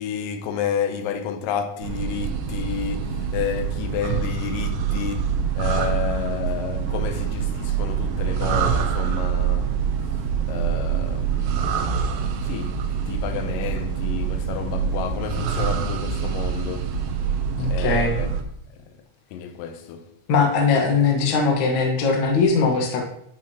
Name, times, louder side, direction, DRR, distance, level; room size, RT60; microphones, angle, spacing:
voice 1, 0.0-9.8 10.5-12.0 12.4-17.0 17.7-18.4 18.7-18.9 19.3-20.1, left 8 dB, 85° left, 2.2 m, -31 dB
sound 1, 1.8-18.4, right 7 dB, 80° right, 2.2 m, -25 dB
voice 2, 17.6-18.1 20.3-23.0, left 4 dB, 65° left, 1.2 m, -20 dB
9.3 x 5.5 x 2.8 m
omnidirectional pair, 4.0 m